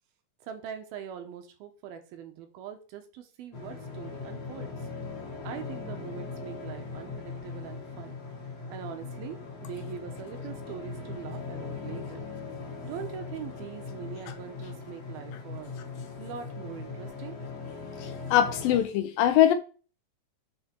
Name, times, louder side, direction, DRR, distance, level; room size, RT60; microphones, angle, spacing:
voice 1, 0.4-4.9 5.4-8.2 8.7-12.2 12.8-15.8 16.2-17.4, right 8 dB, 80° right, 2.8 m, -42 dB
sound 1, 3.5-18.8, left 4 dB, 50° left, 2.5 m, -39 dB
voice 2, 18.0-19.5, left 11 dB, 80° left, 2.2 m, -22 dB
6.9 x 4.6 x 4.4 m
omnidirectional pair, 4.4 m